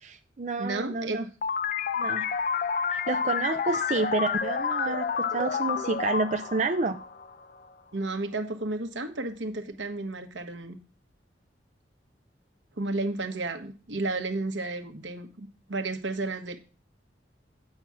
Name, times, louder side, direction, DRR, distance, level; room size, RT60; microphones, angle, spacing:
voice 1, 0.0-1.2 2.0-2.3 2.9-7.0, right 3 dB, 40° right, 6 dB, 0.6 m, -29 dB
voice 2, 0.6-1.3 7.9-10.8 12.8-16.6, right 2 dB, 80° right, 7 dB, 1.3 m, -32 dB
sound 1, 1.4-7.7, left 6 dB, 50° left, 0.5 m, -29 dB
8.8 x 5.9 x 6.1 m, 0.35 s
head